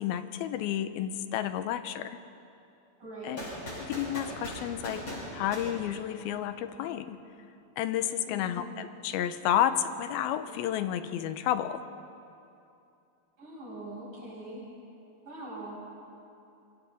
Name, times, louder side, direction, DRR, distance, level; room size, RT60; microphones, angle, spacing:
voice 1, 0.0-2.2 3.2-3.4 3.8-7.2 7.8-11.9, left 10 dB, 90° left, 10 dB, 2.7 m, -31 dB
voice 2, 3.0-3.5 8.3-8.7 13.4-14.6 15.2-15.8, right 1 dB, 60° right, -6 dB, 8.6 m, -42 dB
sound 1, 3.4-6.5, left 1 dB, 30° left, 7.1 m, -40 dB
26.0 x 24.5 x 4.2 m, 2.7 s
omnidirectional pair, 4.3 m